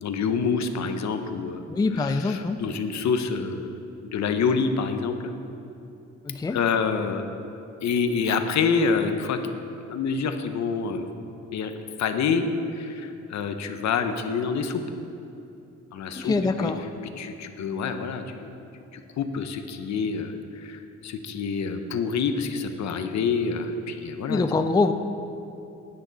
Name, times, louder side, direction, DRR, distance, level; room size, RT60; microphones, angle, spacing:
voice 1, 0.0-1.6 2.0-3.7 4.0-5.3 6.5-7.2 7.8-9.4 9.9-11.1 11.5-11.7 12.0-12.4 12.7-14.8 15.9-16.7 17.2-18.5 18.9-24.4, left 5 dB, 65° left, 7 dB, 0.9 m, -27 dB
voice 2, 1.7-2.6 6.2-6.6 16.1-16.9 24.3-24.9, left 3 dB, 15° left, 8 dB, 0.4 m, -24 dB
12.0 x 9.7 x 4.1 m, 2.7 s
cardioid pair, 90°, 30 cm